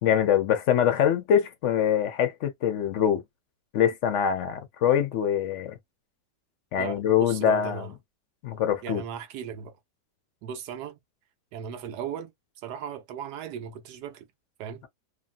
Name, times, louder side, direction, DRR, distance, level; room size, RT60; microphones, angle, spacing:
voice 1, 0.0-3.2 3.7-5.8 6.7-7.8 8.4-9.0, left 9 dB, 65° left, 0.8 m, -24 dB
voice 2, 6.8-7.9 8.8-9.8 10.4-11.0 11.5-14.3 14.6-14.9, right 8 dB, 90° right, 1.2 m, -37 dB
2.8 x 2.6 x 2.4 m
omnidirectional pair, 1.7 m